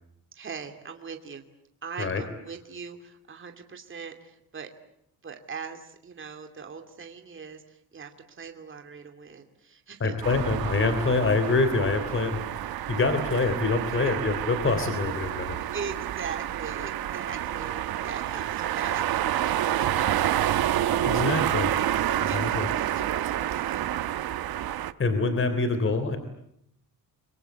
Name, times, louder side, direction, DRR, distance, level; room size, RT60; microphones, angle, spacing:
voice 1, 0.3-1.4 1.8-4.7 5.2-10.3 14.0-14.2 15.7-21.4 21.7-24.4, right 6 dB, 35° right, 5 dB, 2.7 m, -41 dB
voice 2, 10.0-12.4 12.9-15.6 21.0-21.7 22.2-22.7 25.0-26.2, left 3 dB, 35° left, 9 dB, 3.5 m, -25 dB
sound 1, 10.2-24.9, right 12 dB, 80° right, 1.2 m, -28 dB
30.0 x 24.0 x 8.1 m, 0.74 s
cardioid pair, 145°, 36 cm